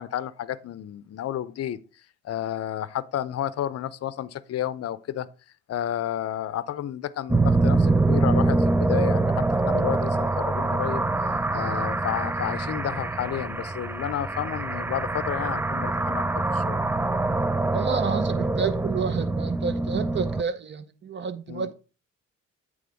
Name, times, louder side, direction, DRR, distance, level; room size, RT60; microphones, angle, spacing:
voice 1, 0.0-1.8 2.2-5.3 5.7-11.0 11.5-16.2 16.5-16.8 21.5-21.7, left 11 dB, 55° left, 0.6 m, -31 dB
sound 1, 7.3-20.4, right 2 dB, 10° right, 0.3 m, -24 dB
voice 2, 17.7-21.7, right 6 dB, 35° right, 0.9 m, -29 dB
8.8 x 3.6 x 5.0 m
cardioid pair, 90°, 30 cm